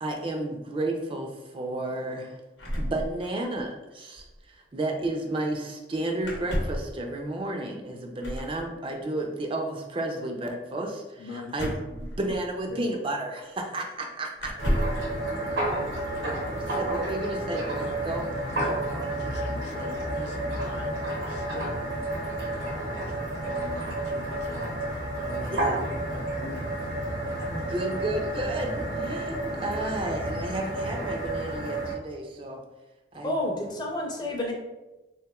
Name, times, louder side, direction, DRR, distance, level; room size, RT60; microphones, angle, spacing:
voice 1, 0.0-2.4 2.8-11.2 11.5-14.5 16.2-18.2 25.5-25.8 27.5-32.6 33.1-33.3, right 2 dB, 30° right, 2 dB, 0.3 m, -32 dB
sound 1, 2.6-3.7 3.9-4.0 4.2-4.4 6.2-6.9 8.2-8.6 11.5-12.7 13.6-13.7 14.4-15.1, equal, 85° left, 0.8 m, -31 dB
voice 2, 11.2-11.7 12.2-12.3 12.7-12.8 17.8-21.0 21.2-27.1, left 2 dB, 70° left, 3 dB, 0.4 m, -43 dB
sound 2, 14.6-31.9, right 1 dB, 90° right, 0.7 m, -31 dB
voice 3, 33.2-34.5, left 1 dB, 25° left, -1 dB, 0.6 m, -29 dB
3.5 x 2.9 x 2.2 m, 1.0 s
head